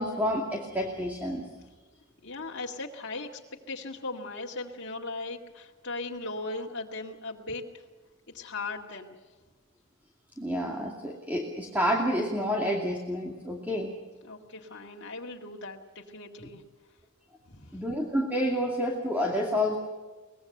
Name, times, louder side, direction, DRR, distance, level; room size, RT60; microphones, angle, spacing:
voice 1, 0.0-1.5 10.4-13.9 17.7-19.8, equal, 10° right, 0 dB, 2.5 m, -29 dB
voice 2, 2.2-3.4 3.7-7.6 8.3-9.2 14.2-16.6 17.5-17.8, left 3 dB, 55° left, -1 dB, 2.1 m, -38 dB
24.0 x 20.0 x 6.7 m, 1.3 s
head